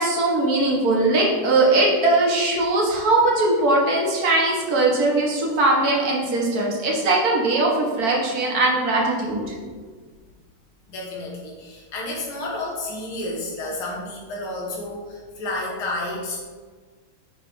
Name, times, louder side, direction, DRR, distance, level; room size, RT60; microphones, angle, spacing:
voice 1, 0.0-9.6, right 2 dB, 45° right, -2 dB, 1.8 m, -20 dB
voice 2, 10.9-16.4, left 2 dB, 75° left, -3 dB, 2.3 m, -31 dB
9.2 x 3.5 x 4.6 m, 1.5 s
omnidirectional pair, 2.3 m